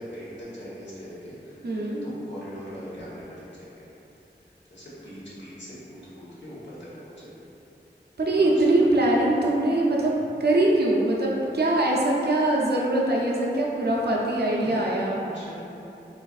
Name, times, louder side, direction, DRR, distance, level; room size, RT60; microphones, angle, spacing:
voice 1, 0.0-3.9 4.7-7.3 8.2-9.3 14.6-14.9 15.2-15.5, equal, 70° left, -10 dB, 1.0 m, -41 dB
voice 2, 1.6-2.0 8.2-10.1 10.4-15.2, right 1 dB, 60° right, -3 dB, 0.5 m, -22 dB
4.0 x 2.5 x 2.3 m, 2.9 s
wide cardioid pair, 60°, 19 cm